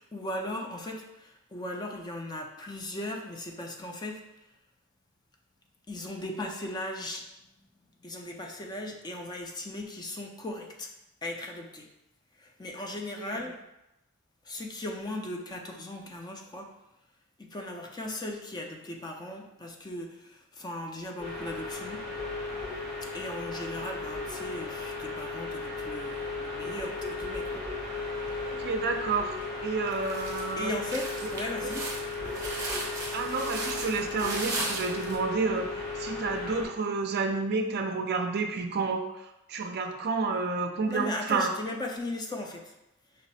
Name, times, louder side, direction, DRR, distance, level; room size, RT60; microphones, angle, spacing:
voice 1, 0.0-4.2 5.9-7.5 8.0-10.9 11.2-11.9 12.4-13.6 14.5-16.7 17.4-22.0 23.1-27.6 30.6-31.9 40.9-42.7, left 1 dB, 20° left, 2 dB, 0.4 m, -37 dB
sound 1, 21.2-36.7, left 3 dB, 75° left, 1.4 m, -36 dB
sound 2, 28.3-28.8 29.3-29.5 29.9-35.2, right 2 dB, 15° right, 0.7 m, -37 dB
voice 2, 28.4-29.4 29.6-30.7 31.2-31.3 33.1-35.7 36.0-39.1 39.5-41.5, right 4 dB, 45° right, 5 dB, 0.4 m, -30 dB
5.2 x 2.0 x 4.1 m, 0.91 s
head